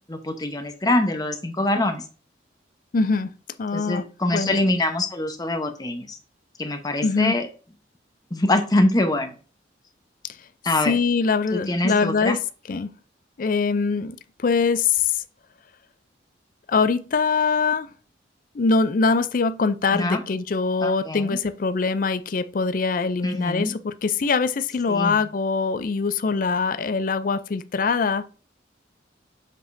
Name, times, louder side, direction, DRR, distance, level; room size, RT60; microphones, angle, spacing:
voice 1, 0.1-2.0 3.7-6.2 6.6-7.5 8.3-9.3 10.6-11.0 11.5-12.4 19.9-20.2 20.8-21.4 23.2-23.8 24.9-25.2, left 1 dB, 20° left, 0.9 m, -24 dB
voice 2, 2.9-3.3 3.6-4.6 7.0-7.3 10.8-12.4 12.7-12.9 13.4-15.2 16.7-17.9 18.5-28.3, left 4 dB, 45° left, 0.4 m, -23 dB
7.6 x 5.0 x 2.6 m
head